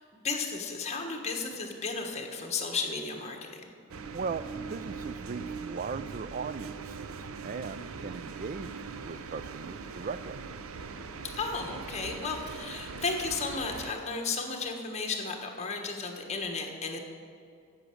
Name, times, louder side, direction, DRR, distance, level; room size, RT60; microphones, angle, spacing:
voice 1, 0.2-3.7 11.3-17.0, left 4 dB, 30° left, 3 dB, 1.3 m, -34 dB
sound 1, 3.9-13.9, right 5 dB, 85° right, 0.6 m, -41 dB
voice 2, 4.1-10.4, right 5 dB, 40° right, 16 dB, 0.3 m, -38 dB
10.0 x 7.3 x 7.7 m, 2.3 s
head